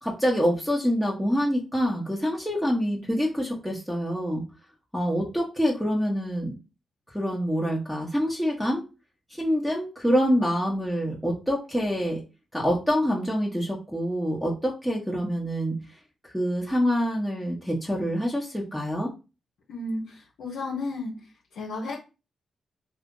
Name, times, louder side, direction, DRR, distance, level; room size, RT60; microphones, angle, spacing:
voice 1, 0.0-4.4 4.9-6.5 7.1-8.8 9.3-12.2 12.5-15.8 16.3-19.1, equal, ahead, -4 dB, 1.1 m, -26 dB
voice 2, 19.7-21.1 21.5-21.9, left 2 dB, 85° left, -3 dB, 0.8 m, -33 dB
2.8 x 2.5 x 3.7 m, 0.29 s
supercardioid pair, 50°, 0 cm